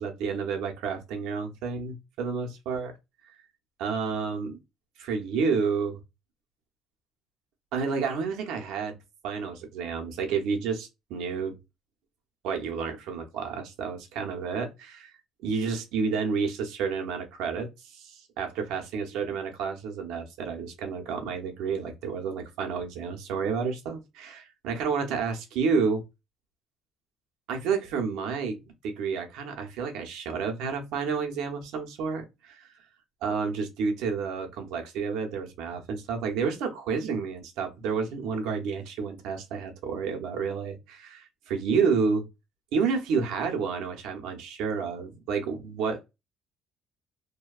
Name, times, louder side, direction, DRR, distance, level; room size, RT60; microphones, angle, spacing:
voice 1, 0.0-2.9 3.8-4.6 5.0-6.0 7.7-9.0 9.2-11.6 12.4-15.1 15.4-26.0 27.5-28.6 28.8-32.7 33.2-42.3 42.7-46.0, right 5 dB, 75° right, 0.7 m, -30 dB
2.7 x 2.2 x 2.3 m
cardioid pair, 180°, 0 cm